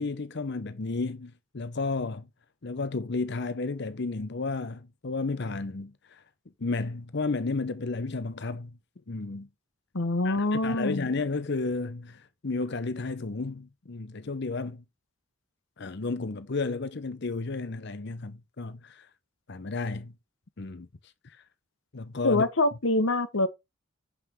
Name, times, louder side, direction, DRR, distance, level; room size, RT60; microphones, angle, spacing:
voice 1, 0.0-2.3 2.6-6.2 6.6-8.8 9.1-9.5 10.2-14.8 15.8-19.1 19.5-20.1 20.6-20.9 21.9-22.4, left 3 dB, 55° left, 0.8 m, -32 dB
voice 2, 9.9-11.1 22.2-23.5, left 2 dB, 75° left, 1.3 m, -25 dB
7.8 x 5.8 x 4.6 m
head